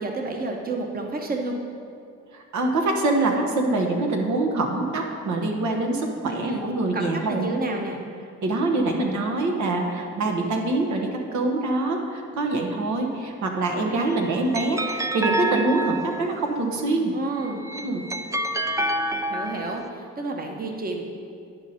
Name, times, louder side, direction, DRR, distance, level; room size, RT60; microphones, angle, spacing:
voice 1, 0.0-1.5 6.2-6.6 6.9-8.0 17.1-17.6 19.3-21.0, right 2 dB, 30° right, 2 dB, 1.0 m, -30 dB
voice 2, 2.3-7.5 8.4-17.1 17.7-18.1, right 2 dB, 70° right, 2 dB, 1.1 m, -25 dB
sound 1, 14.1-16.5 17.4-19.9, right 1 dB, 10° right, 0.3 m, -28 dB
10.5 x 5.3 x 4.2 m, 2.3 s
cardioid pair, 90°, 30 cm